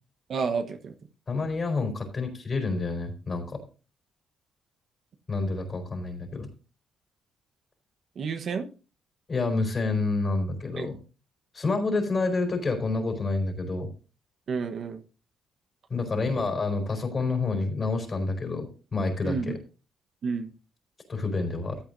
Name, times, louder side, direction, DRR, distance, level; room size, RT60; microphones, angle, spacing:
voice 1, 0.3-0.9 8.2-8.7 10.8-10.9 14.5-15.0 19.2-19.5 20.2-20.5, right 5 dB, 55° right, 1.1 m, -30 dB
voice 2, 1.3-3.6 5.3-6.5 9.3-11.0 11.5-13.9 15.9-19.6 21.1-21.8, left 3 dB, 35° left, 4.4 m, -28 dB
14.5 x 8.6 x 2.6 m
cardioid pair, 90°, 0 cm